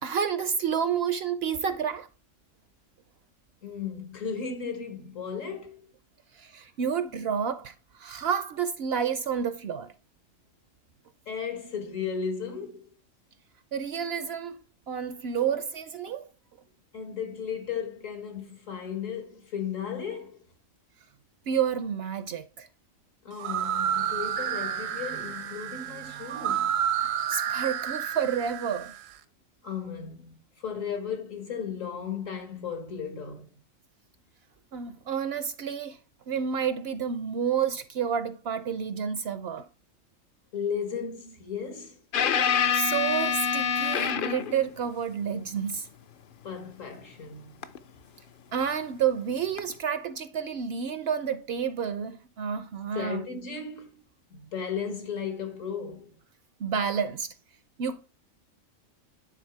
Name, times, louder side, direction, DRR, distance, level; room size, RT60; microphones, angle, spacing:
voice 1, 0.0-2.1 6.3-9.9 13.7-14.6 14.9-16.3 21.5-22.7 27.3-28.9 34.7-36.0 36.3-39.6 42.7-45.9 48.5-53.2 56.6-57.3 57.8-58.0, right 7 dB, 65° right, 0.7 m, -30 dB
voice 2, 3.6-5.9 11.3-12.9 16.9-20.4 23.2-26.8 29.6-33.5 40.5-42.0 46.4-47.7 52.9-54.0 54.3-56.1, left 6 dB, 75° left, 2.0 m, -35 dB
sound 1, 23.3-29.1, right 9 dB, 80° right, 1.1 m, -30 dB
sound 2, 42.1-44.6 47.6-47.8 49.6-49.7, left 7 dB, 55° left, 0.6 m, -26 dB
9.2 x 4.0 x 4.5 m
omnidirectional pair, 1.4 m